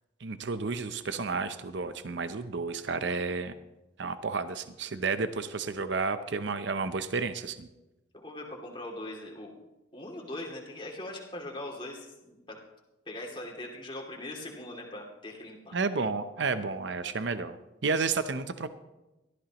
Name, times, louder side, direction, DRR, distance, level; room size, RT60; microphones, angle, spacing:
voice 1, 0.2-3.5 4.0-7.7 15.7-17.6 17.8-18.7, right 4 dB, 65° right, 11 dB, 0.6 m, -31 dB
voice 2, 8.1-9.6 9.9-12.6 13.1-15.8, left 1 dB, 25° left, -1 dB, 2.5 m, -41 dB
18.5 x 13.5 x 3.0 m, 1.0 s
head